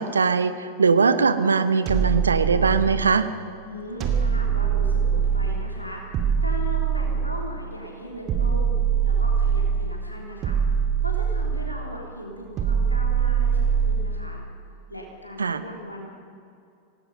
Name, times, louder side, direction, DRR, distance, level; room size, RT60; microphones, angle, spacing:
voice 1, 0.0-3.3 15.4-15.6, right 5 dB, 75° right, 11 dB, 1.1 m, -21 dB
sound 1, 1.9-3.2 4.0-5.6 6.1-7.6 8.3-9.9 10.4-11.8 12.6-14.2, right 7 dB, 35° right, 2.6 m, -23 dB
voice 2, 3.6-6.2 6.4-8.8 9.0-14.4 14.9-16.1, equal, 85° left, -1 dB, 3.4 m, -38 dB
26.5 x 19.0 x 5.4 m, 2.5 s
figure-of-eight pair, 90°, 0 cm